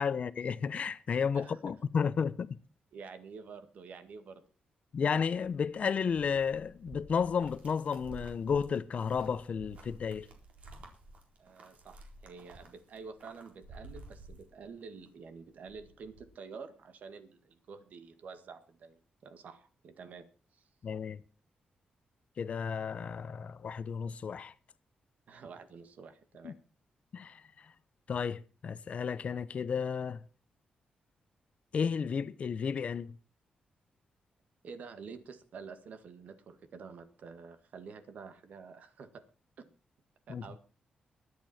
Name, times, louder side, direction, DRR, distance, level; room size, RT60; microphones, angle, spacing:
voice 1, 0.0-2.5 4.9-10.3 20.8-21.2 22.4-24.5 26.4-26.5 27.1-27.7 28.1-30.2 31.7-33.2 40.3-40.4, left 6 dB, 50° left, 0.8 m, -32 dB
voice 2, 2.9-4.4 11.4-20.3 20.5-20.7 25.3-26.6 34.6-39.2 39.6-39.7 40.3-40.6, right 5 dB, 70° right, 1.9 m, -49 dB
sound 1, 5.4-15.1 15.4-16.3, right 2 dB, 55° right, 3.9 m, -52 dB
23.0 x 8.5 x 4.4 m
cardioid pair, 110°, 3 cm